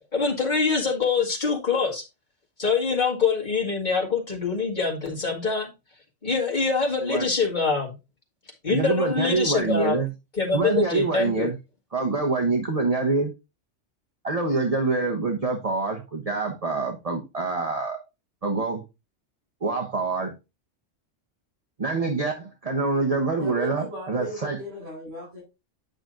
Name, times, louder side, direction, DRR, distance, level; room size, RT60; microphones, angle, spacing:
voice 1, 0.1-2.0 2.6-5.7 6.2-7.9 8.6-10.0 10.4-11.5, left 4 dB, 40° left, 1.9 m, -24 dB
voice 2, 8.7-10.1 10.5-11.6 11.9-13.3 14.2-18.0 18.4-18.8 19.6-20.3 21.8-24.6, right 3 dB, 30° right, 1.1 m, -25 dB
voice 3, 23.4-25.4, right 1 dB, 80° right, 4.9 m, -37 dB
9.2 x 6.0 x 2.5 m
omnidirectional pair, 1.3 m